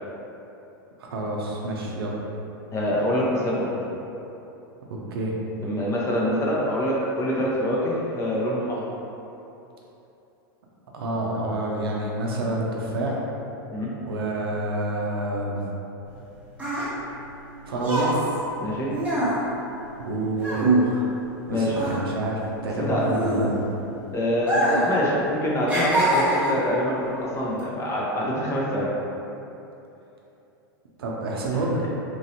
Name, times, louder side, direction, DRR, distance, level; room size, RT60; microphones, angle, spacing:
voice 1, 1.0-2.1 5.1-5.4 10.9-13.2 14.1-15.6 17.6-18.1 20.0-21.1 21.5-23.5 31.0-31.9, right 2 dB, 85° right, -2 dB, 0.6 m, -28 dB
voice 2, 2.7-3.7 5.6-8.8 13.7-13.9 18.6-18.9 21.5-21.8 22.8-23.0 24.1-28.9 31.5-31.6, equal, 25° left, -5 dB, 0.7 m, -25 dB
sound 1, 16.1-21.4 21.7-23.9 24.4-25.0 25.2-26.7 27.4-27.6, right 1 dB, 10° right, 0.9 m, -24 dB
3.1 x 2.6 x 2.7 m, 2.9 s
hypercardioid pair, 110°, 12 cm